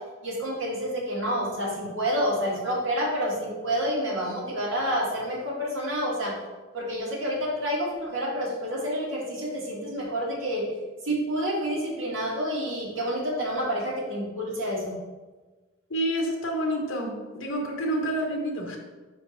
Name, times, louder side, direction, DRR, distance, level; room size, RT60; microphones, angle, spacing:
voice 1, 0.2-6.3 6.7-10.6 11.0-14.9, equal, 70° right, -5 dB, 2.1 m, -28 dB
voice 2, 15.9-18.8, right 1 dB, 75° left, 1 dB, 1.2 m, -28 dB
5.1 x 4.7 x 5.1 m, 1.3 s
head